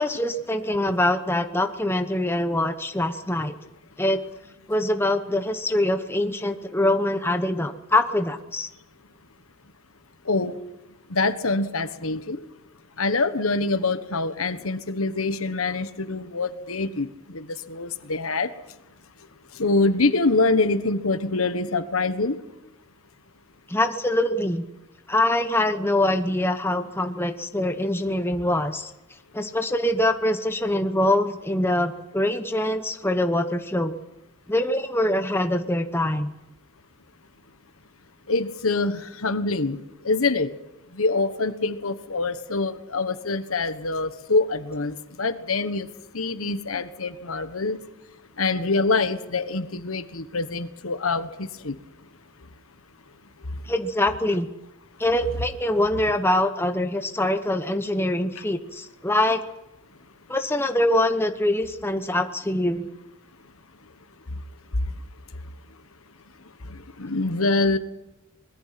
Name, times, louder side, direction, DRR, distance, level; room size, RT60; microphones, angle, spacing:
voice 1, 0.0-3.5 4.0-4.2 4.7-8.7 23.7-24.6 25.1-28.9 29.3-34.0 34.5-36.3 53.7-54.5 55.0-59.4 60.3-62.9, left 1 dB, 10° left, 7 dB, 1.0 m, -24 dB
voice 2, 11.1-12.4 13.0-17.1 17.3-18.5 19.6-22.4 38.3-40.5 41.0-45.9 46.1-47.8 48.4-51.8 67.0-67.8, left 3 dB, 75° left, 10 dB, 1.4 m, -25 dB
24.0 x 21.0 x 5.9 m, 0.95 s
head